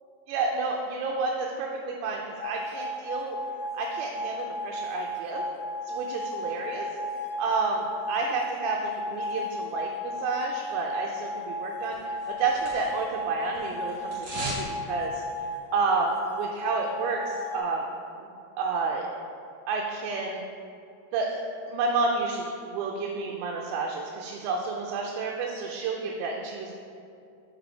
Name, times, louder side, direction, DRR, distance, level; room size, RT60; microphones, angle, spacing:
voice 1, 0.3-3.4 3.7-5.4 5.8-6.9 7.4-15.2 15.7-17.8 18.2-18.3 18.6-19.1 19.7-20.4 21.1-21.4 21.7-26.8, right 4 dB, 85° right, 0 dB, 2.8 m, -30 dB
sound 1, 2.4-17.6, left 1 dB, 85° left, 2.7 m, -34 dB
sound 2, 11.9-13.1 13.4-14.7 15.0-15.1, right 1 dB, 55° right, 1.2 m, -37 dB
6.3 x 5.2 x 4.3 m, 2.5 s
omnidirectional pair, 5.0 m